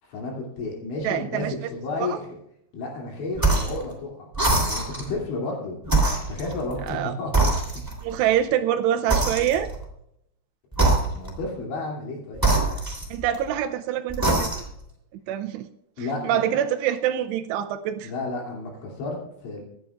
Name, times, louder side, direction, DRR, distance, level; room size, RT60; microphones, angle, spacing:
voice 1, 0.0-2.3 2.7-5.8 6.3-7.3 11.1-12.5 16.0-16.4 18.0-19.6, left 3 dB, 70° left, -1 dB, 5.0 m, -32 dB
voice 2, 1.0-1.5 2.0-2.2 6.9-7.1 8.0-9.7 13.1-14.5 15.3-15.7 16.0-18.1, right 10 dB, 85° right, 6 dB, 2.5 m, -25 dB
sound 1, 3.4-3.8 4.3-5.1 5.8-7.0 7.3-8.1 9.1-9.8 10.7-11.4 12.4-13.5 14.1-14.8, right 2 dB, 5° right, 2.1 m, -23 dB
25.5 x 10.5 x 2.4 m, 0.76 s
omnidirectional pair, 5.5 m